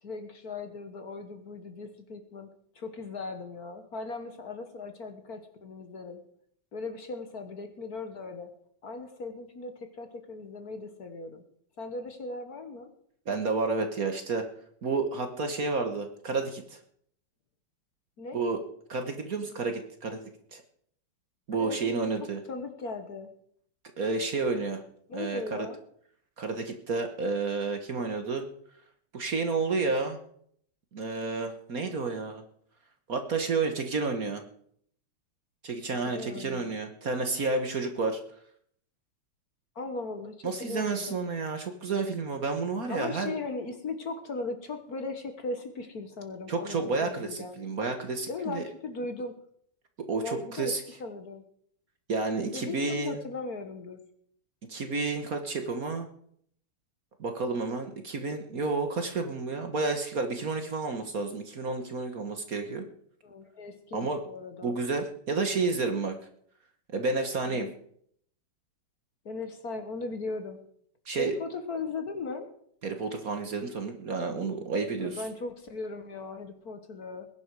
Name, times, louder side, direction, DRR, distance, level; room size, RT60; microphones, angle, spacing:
voice 1, 0.0-2.5 2.7-6.2 6.7-8.5 8.8-11.4 11.8-12.9 18.2-18.4 21.6-21.8 22.5-23.3 25.1-25.8 36.1-36.7 39.7-41.2 42.9-47.6 48.3-49.3 50.2-50.7 51.0-51.4 52.4-54.0 63.2-64.7 67.5-67.7 69.2-70.6 71.2-72.5 75.0-77.3, left 3 dB, 50° left, 7 dB, 1.7 m, -38 dB
voice 2, 13.3-14.4 14.8-16.8 18.3-18.6 18.9-20.6 21.5-22.4 24.0-24.8 25.1-25.7 26.4-28.5 29.1-30.2 30.9-32.4 33.1-34.4 35.6-38.2 40.4-43.3 46.5-48.7 50.1-50.8 52.1-53.2 54.7-56.1 57.2-62.8 63.9-64.2 64.6-66.1 66.9-67.7 71.1-71.3 72.8-75.2, right 4 dB, 45° right, 6 dB, 1.6 m, -30 dB
20.5 x 10.5 x 4.8 m, 0.65 s
omnidirectional pair, 2.3 m